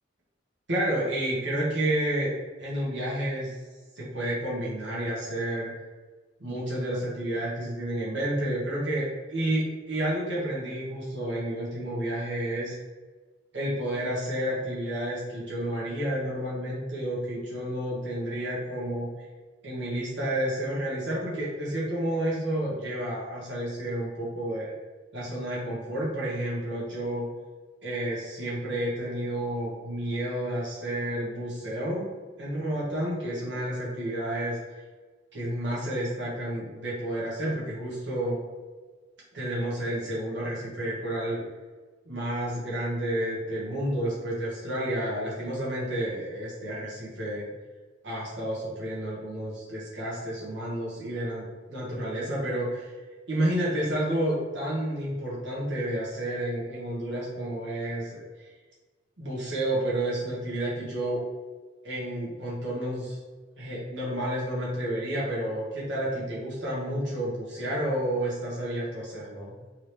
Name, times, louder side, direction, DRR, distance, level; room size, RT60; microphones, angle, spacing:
voice 1, 0.7-2.3 2.6-3.6 3.9-5.7 6.4-12.8 13.5-19.1 19.6-24.7 25.1-27.3 27.8-32.0 32.4-34.6 35.3-38.4 39.3-41.4 42.1-47.5 48.0-52.9 53.3-58.5 59.2-61.2 61.8-63.2 63.6-69.6, right 1 dB, 70° right, -6 dB, 1.3 m, -30 dB
3.7 x 3.1 x 3.2 m, 1.3 s
head